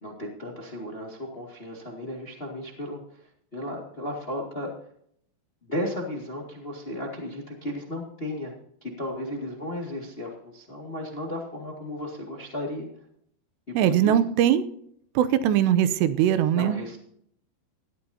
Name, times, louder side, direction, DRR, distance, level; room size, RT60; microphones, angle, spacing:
voice 1, 0.0-4.7 5.6-8.5 8.8-12.9 13.7-14.2 16.5-17.0, left 1 dB, 30° left, 0 dB, 1.1 m, -34 dB
voice 2, 13.7-14.7 15.2-16.8, right 10 dB, 85° right, 13 dB, 2.9 m, -21 dB
19.0 x 13.5 x 2.8 m, 0.66 s
omnidirectional pair, 5.0 m